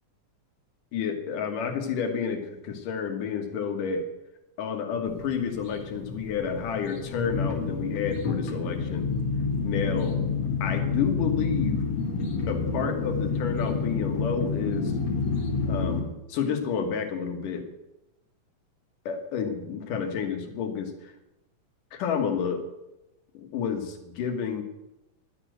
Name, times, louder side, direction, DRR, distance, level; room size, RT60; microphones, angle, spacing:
voice 1, 0.9-4.1 4.6-9.1 9.6-10.2 10.6-11.8 12.5-14.9 15.7-17.6 19.1-21.1 21.9-22.6 23.3-24.6, left 6 dB, 85° left, 5 dB, 3.0 m, -30 dB
sound 1, 5.0-16.0, left 4 dB, 55° left, 2.7 m, -29 dB
11.0 x 8.5 x 7.9 m, 0.93 s
omnidirectional pair, 3.7 m